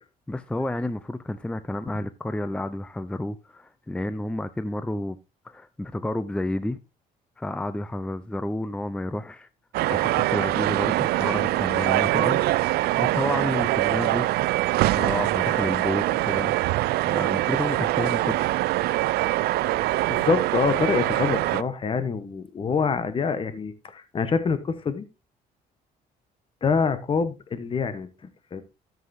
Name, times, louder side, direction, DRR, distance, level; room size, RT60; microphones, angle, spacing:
voice 1, 0.3-5.2 5.4-6.8 7.4-9.5 9.9-12.4 13.0-14.3 14.9-16.5 17.1-18.5, left 1 dB, 5° left, 0.5 m, -30 dB
sound 1, 9.7-21.6, right 17 dB, 70° right, 0.4 m, -23 dB
voice 2, 19.7-25.0 26.6-28.1 28.5-28.6, left 5 dB, 30° left, 1.1 m, -26 dB
13.0 x 7.6 x 2.7 m
cardioid pair, 110°, 17 cm